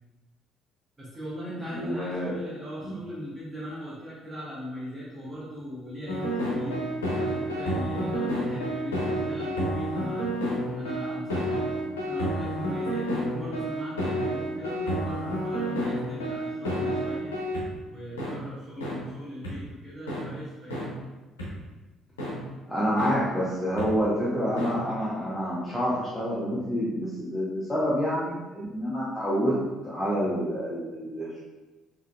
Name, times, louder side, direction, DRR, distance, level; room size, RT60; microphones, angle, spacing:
voice 1, 1.0-6.9 7.1-10.3 10.8-11.6 12.1-17.3 17.9-20.9, equal, 20° right, -8 dB, 0.8 m, -39 dB
voice 2, 1.7-2.3 2.8-2.9 22.7-29.5 29.8-31.4, equal, 10° left, -9 dB, 0.7 m, -28 dB
sound 1, 6.1-17.6 18.2-18.3 18.8-18.9 19.4-19.5 20.1-20.2 20.7-20.8 21.4-21.5 22.2-22.3 23.0-23.1 23.8-23.9 24.6-24.7, equal, 75° left, 0.6 m, -29 dB
3.6 x 2.5 x 2.2 m, 1.2 s
figure-of-eight pair, 50°, 0 cm